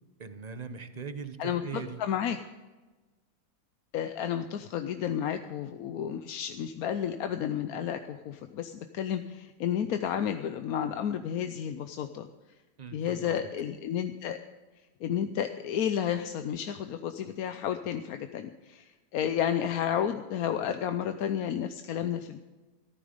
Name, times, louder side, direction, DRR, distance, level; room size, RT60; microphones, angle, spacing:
voice 1, 0.2-2.0 12.8-13.4, right 5 dB, 35° right, 10 dB, 0.8 m, -40 dB
voice 2, 1.4-2.4 3.9-12.3 12.9-14.4 15.0-22.4, left 9 dB, 70° left, 8 dB, 1.1 m, -31 dB
14.5 x 12.5 x 5.2 m, 1.2 s
omnidirectional pair, 1.7 m